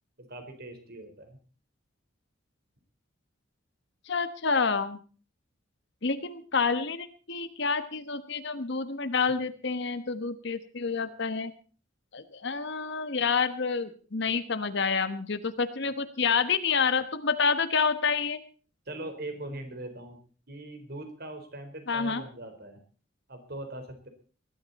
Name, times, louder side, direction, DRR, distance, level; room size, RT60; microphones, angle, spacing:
voice 1, 0.2-1.4 18.9-20.2 20.5-22.8 23.3-24.1, right 1 dB, 55° right, 7 dB, 4.2 m, -41 dB
voice 2, 4.1-5.0 6.0-11.5 12.1-18.4 21.9-22.2, left 5 dB, 65° left, 10 dB, 1.2 m, -28 dB
20.5 x 12.5 x 4.2 m, 0.39 s
head